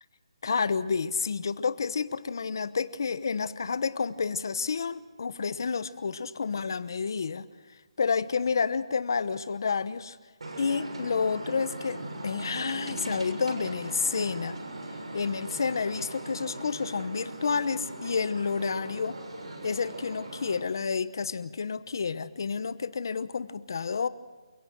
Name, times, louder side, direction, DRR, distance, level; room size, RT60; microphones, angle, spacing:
voice 1, 0.4-7.4 8.0-10.2 10.6-14.6 15.1-19.2 19.6-24.1, left 5 dB, 40° left, 15 dB, 1.0 m, -30 dB
sound 1, 10.4-20.6, right 2 dB, 75° right, 6.9 m, -39 dB
29.0 x 17.0 x 6.1 m, 1.4 s
hypercardioid pair, 180°, 3 cm